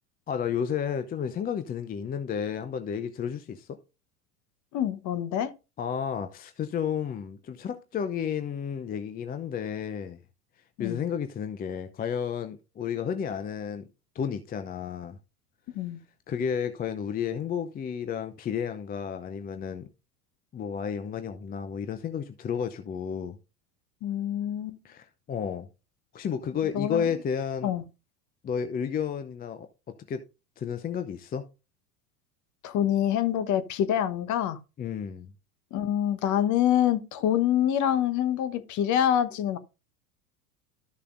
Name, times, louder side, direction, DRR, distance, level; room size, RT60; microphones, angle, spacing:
voice 1, 0.3-3.8 5.8-10.2 10.8-13.9 14.1-15.2 16.3-19.9 20.5-23.4 24.8-25.7 26.1-27.7 28.4-30.2 30.6-31.5 34.8-35.3, left 7 dB, 20° left, 0.6 m, -32 dB
voice 2, 4.7-5.5 10.8-11.0 15.7-16.0 24.0-24.8 26.7-27.1 27.6-27.8 32.6-34.6 35.7-39.6, left 10 dB, 40° left, 1.2 m, -26 dB
13.0 x 6.6 x 2.6 m
figure-of-eight pair, 80°, 45 cm